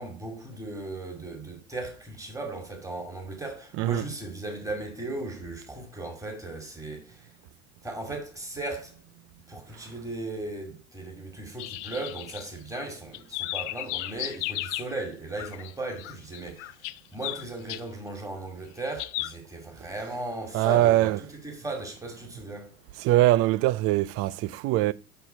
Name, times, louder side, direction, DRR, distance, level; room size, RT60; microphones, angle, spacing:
voice 1, 0.0-7.3 7.8-9.0 9.5-16.8 17.1-22.7, right 2 dB, 5° right, 2.4 m, -37 dB
sound 1, 11.6-12.8 13.1-14.9 15.4-15.7 16.0-17.8 19.0-19.3, left 19 dB, 55° left, 0.5 m, -34 dB
voice 2, 20.5-21.2 23.0-24.9, right 16 dB, 35° right, 0.4 m, -22 dB
6.0 x 5.4 x 5.7 m
figure-of-eight pair, 75°, 44 cm